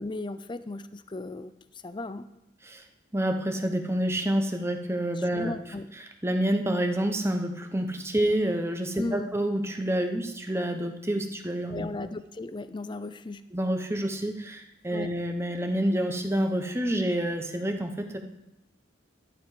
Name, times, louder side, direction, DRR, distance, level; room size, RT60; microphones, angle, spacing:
voice 1, 0.0-2.3 5.2-5.9 9.0-9.3 11.7-13.5 14.9-15.2, left 2 dB, 25° left, 13 dB, 0.4 m, -36 dB
voice 2, 3.1-5.5 6.2-11.9 13.5-18.2, right 1 dB, 15° right, 5 dB, 1.0 m, -28 dB
12.0 x 11.0 x 4.9 m, 0.88 s
head